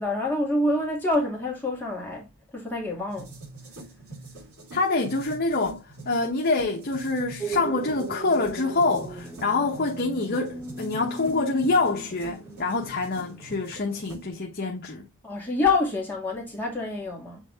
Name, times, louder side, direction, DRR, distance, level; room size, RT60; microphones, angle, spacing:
voice 1, 0.0-3.3 15.2-17.4, left 2 dB, 10° left, 2.6 m, -27 dB
sound 1, 3.1-14.3, right 2 dB, 80° right, 4.4 m, -44 dB
voice 2, 4.7-15.1, left 3 dB, 45° left, 1.1 m, -26 dB
sound 2, 7.4-14.0, right 3 dB, 10° right, 1.9 m, -38 dB
7.8 x 3.8 x 3.4 m
head